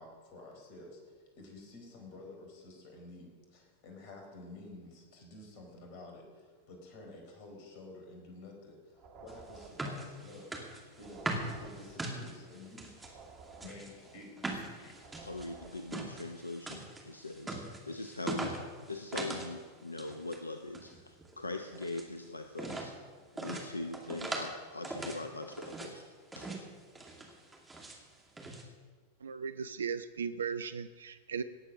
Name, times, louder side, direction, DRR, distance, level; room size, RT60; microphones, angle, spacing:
voice 1, 0.0-10.6 10.9-12.9 13.6-15.1, left 2 dB, 45° left, 3 dB, 4.2 m, -51 dB
sound 1, 8.9-16.3, right 4 dB, 35° right, 2.2 m, -55 dB
sound 2, 9.3-13.1 13.5-19.5 19.8-20.4 20.7-22.1 22.5-22.9 23.4-24.5 24.8-25.9 26.3-26.7 26.9-28.0 28.4-28.6, right 2 dB, 10° right, 2.4 m, -41 dB
voice 2, 15.1-18.6 18.9-22.9 23.3-26.0 26.3-26.5, left 2 dB, 80° left, 7 dB, 0.7 m, -41 dB
voice 3, 29.2-31.4, right 6 dB, 70° right, 12 dB, 0.5 m, -37 dB
18.0 x 8.2 x 6.3 m, 1.5 s
figure-of-eight pair, 90°, 0 cm